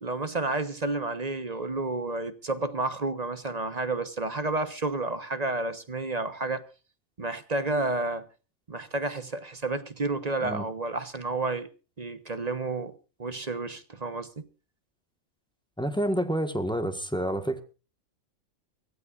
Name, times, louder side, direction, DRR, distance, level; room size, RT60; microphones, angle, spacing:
voice 1, 0.0-6.6 7.2-8.2 8.7-11.7 12.0-12.9 13.2-14.5, right 2 dB, 35° right, 1.2 m, -30 dB
voice 2, 15.8-17.6, right 1 dB, 5° left, 1.5 m, -28 dB
24.5 x 15.5 x 2.5 m
omnidirectional pair, 1.3 m